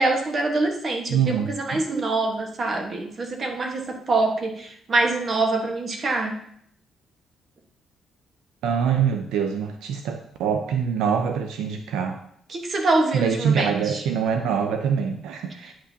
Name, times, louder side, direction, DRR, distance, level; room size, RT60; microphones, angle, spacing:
voice 1, 0.0-6.4 12.5-14.0 15.6-15.7, right 2 dB, 45° right, 3 dB, 1.3 m, -25 dB
voice 2, 1.1-1.8 8.6-12.2 13.1-15.7, right 7 dB, 90° right, 5 dB, 0.6 m, -24 dB
9.6 x 5.9 x 2.8 m, 0.68 s
cardioid pair, 90°, 0 cm